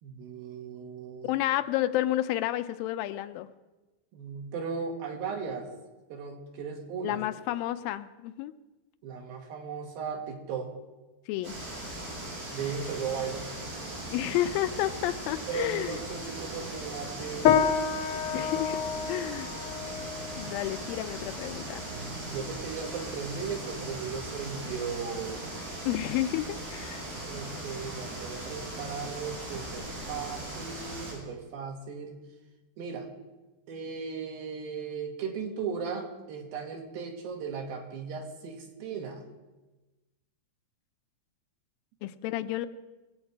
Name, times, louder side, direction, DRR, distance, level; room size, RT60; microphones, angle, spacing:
voice 1, 0.0-1.4 4.1-5.7 6.1-7.2 9.0-10.7 12.5-13.5 15.5-17.7 18.3-18.6 19.2-19.3 21.9-25.5 27.3-32.2 32.8-33.1 33.7-39.2, right 6 dB, 80° right, 2 dB, 3.4 m, -37 dB
voice 2, 1.2-3.5 7.0-8.5 11.3-11.6 14.1-16.0 18.3-18.8 19.1-19.5 20.4-21.8 25.9-27.1 42.0-42.7, left 13 dB, 80° left, 10 dB, 2.3 m, -31 dB
sound 1, 11.4-31.1, right 1 dB, 60° right, 5.7 m, -39 dB
sound 2, 17.4-27.1, left 8 dB, 65° left, 1.4 m, -32 dB
21.0 x 8.1 x 4.7 m, 1.1 s
omnidirectional pair, 4.2 m